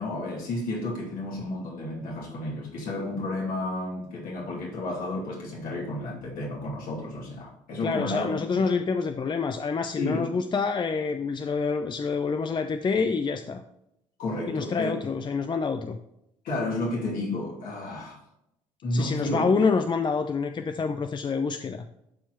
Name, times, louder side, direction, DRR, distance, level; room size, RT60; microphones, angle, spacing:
voice 1, 0.0-8.3 10.0-10.2 14.2-14.9 16.4-18.2 18.8-19.4, left 2 dB, 60° left, 2.6 m, -31 dB
voice 2, 7.8-13.6 14.5-16.0 18.9-21.9, left 5 dB, 30° left, 0.6 m, -27 dB
12.0 x 4.6 x 3.0 m
hypercardioid pair, 55°, 16 cm